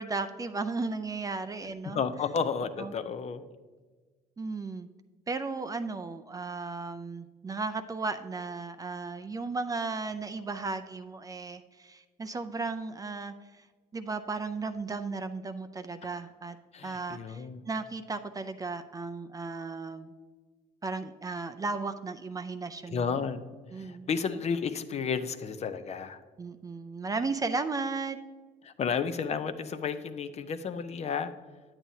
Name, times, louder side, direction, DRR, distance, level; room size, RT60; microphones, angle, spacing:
voice 1, 0.0-2.0 2.8-2.9 4.4-4.9 5.3-13.7 13.9-16.6 16.8-20.1 20.8-23.2 23.7-24.1 26.4-28.2, right 3 dB, 20° right, 8 dB, 0.4 m, -35 dB
voice 2, 1.9-3.5 16.7-17.6 22.9-23.4 23.7-26.2 28.6-31.3, left 6 dB, 40° left, 11 dB, 0.5 m, -32 dB
8.9 x 8.7 x 2.7 m, 1.4 s
cardioid pair, 110°, 17 cm